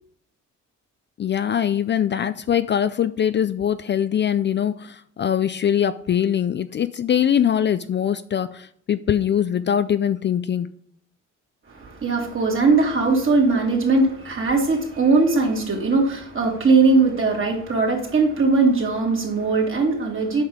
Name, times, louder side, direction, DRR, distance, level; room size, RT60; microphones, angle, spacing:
voice 1, 1.2-10.7, left 9 dB, 40° left, 0.4 m, -22 dB
voice 2, 11.7-20.4, right 3 dB, 45° right, 2.8 m, -20 dB
7.9 x 5.6 x 5.0 m
cardioid pair, 90°, 30 cm